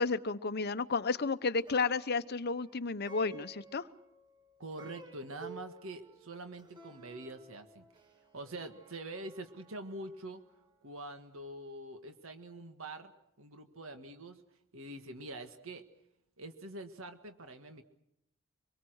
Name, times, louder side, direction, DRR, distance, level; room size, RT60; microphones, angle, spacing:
voice 1, 0.0-3.8, left 4 dB, 50° left, 13 dB, 0.9 m, -32 dB
Plucked string instrument, 1.5-10.9, right 3 dB, 20° right, 2.1 m, -55 dB
voice 2, 4.6-7.9 8.3-10.4 10.8-13.1 13.4-14.4 14.7-15.8 16.4-17.8, right 2 dB, 70° right, 7 dB, 1.7 m, -45 dB
25.5 x 22.5 x 6.4 m, 0.80 s
head